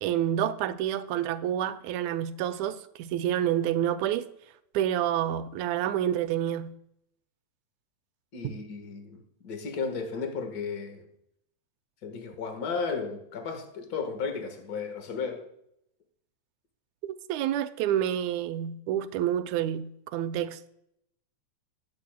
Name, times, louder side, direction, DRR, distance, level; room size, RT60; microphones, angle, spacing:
voice 1, 0.0-4.3 4.7-6.7 8.4-8.5 17.0-20.7, right 11 dB, 85° right, 2.0 m, -28 dB
voice 2, 8.3-11.0 12.0-15.5, left 5 dB, 40° left, 1.6 m, -34 dB
19.5 x 8.3 x 2.2 m
omnidirectional pair, 3.3 m